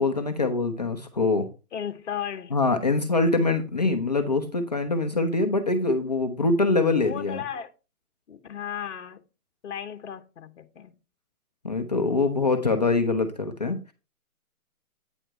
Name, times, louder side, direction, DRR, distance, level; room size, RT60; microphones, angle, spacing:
voice 1, 0.0-1.5 2.5-7.4 11.6-13.9, left 3 dB, 30° left, 0.5 m, -24 dB
voice 2, 1.7-2.6 7.0-7.7 8.3-9.2 9.6-10.9, left 9 dB, 50° left, 1.0 m, -35 dB
9.0 x 4.5 x 4.5 m
hypercardioid pair, 155°, 45 cm